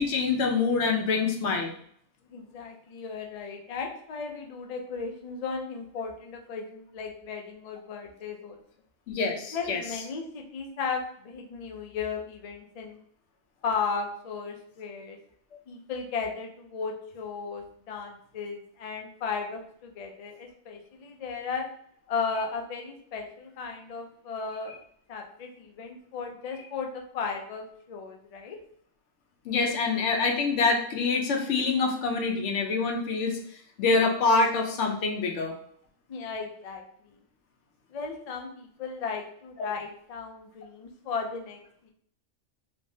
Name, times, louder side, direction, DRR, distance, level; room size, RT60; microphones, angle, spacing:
voice 1, 0.0-1.7 9.1-9.8 29.5-33.4 33.8-35.5, left 4 dB, 90° left, 2 dB, 0.9 m, -25 dB
voice 2, 2.3-8.6 9.5-13.0 13.6-15.2 15.7-21.7 22.1-24.7 25.1-28.6 36.1-37.2 37.9-41.9, left 5 dB, 60° left, 3 dB, 0.4 m, -35 dB
3.3 x 2.0 x 2.6 m, 0.62 s
omnidirectional pair, 1.2 m